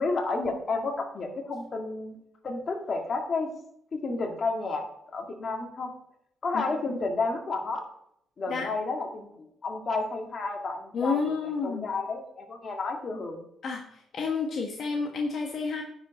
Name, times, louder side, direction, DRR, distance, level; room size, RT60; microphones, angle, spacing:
voice 1, 0.0-2.2 2.4-3.5 3.9-4.8 5.1-5.9 6.4-7.9 8.4-13.4, left 3 dB, 45° left, 2 dB, 1.9 m, -31 dB
voice 2, 10.9-11.9 13.6-15.8, left 4 dB, 60° left, 1 dB, 1.2 m, -30 dB
9.7 x 5.2 x 4.9 m, 0.73 s
cardioid pair, 90°, 0 cm